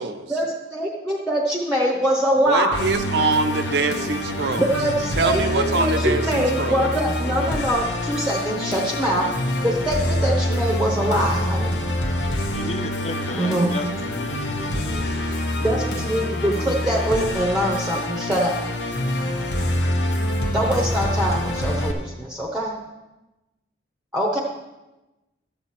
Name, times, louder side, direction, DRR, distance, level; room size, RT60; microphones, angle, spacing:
voice 1, 0.3-2.8 4.6-11.8 13.4-13.7 15.6-18.6 20.5-22.7 24.1-24.4, right 1 dB, 5° right, -2 dB, 0.9 m, -23 dB
voice 2, 2.4-4.7 5.2-6.9, right 3 dB, 65° right, 8 dB, 0.7 m, -24 dB
Musical instrument, 2.7-21.9, left 1 dB, 75° left, 1.2 m, -26 dB
voice 3, 12.5-15.2, left 2 dB, 35° left, 7 dB, 0.7 m, -34 dB
12.0 x 7.8 x 4.3 m, 1.0 s
head